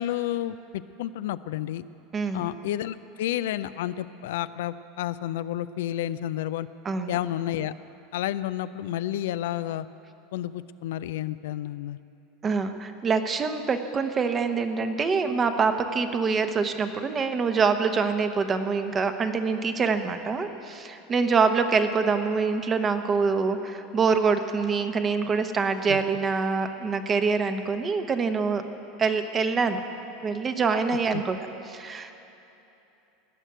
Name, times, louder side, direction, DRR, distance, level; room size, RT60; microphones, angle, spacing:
voice 1, 0.0-1.8 2.3-6.7 7.1-7.7 8.1-9.9 10.3-12.0 25.9-26.0 31.1-31.2, left 12 dB, 75° left, 14 dB, 0.4 m, -30 dB
voice 2, 2.1-2.4 6.8-7.2 12.4-28.6 29.0-29.8 30.2-31.4 31.7-32.2, right 5 dB, 30° right, 7 dB, 1.1 m, -25 dB
18.0 x 6.5 x 9.1 m, 2.9 s
hypercardioid pair, 90°, 0 cm